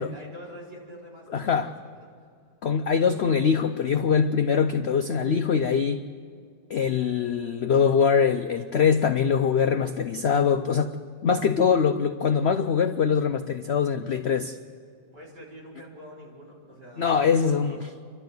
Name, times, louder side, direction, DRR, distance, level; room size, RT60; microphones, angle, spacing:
voice 1, 0.0-2.3 3.0-3.2 14.0-14.2 15.1-17.8, equal, 70° right, -5 dB, 5.5 m, -45 dB
voice 2, 1.3-1.7 2.6-6.0 6.7-11.0 11.2-14.6 17.0-17.8, left 6 dB, 85° left, 8 dB, 0.5 m, -23 dB
28.0 x 12.5 x 7.9 m, 2.2 s
omnidirectional pair, 1.9 m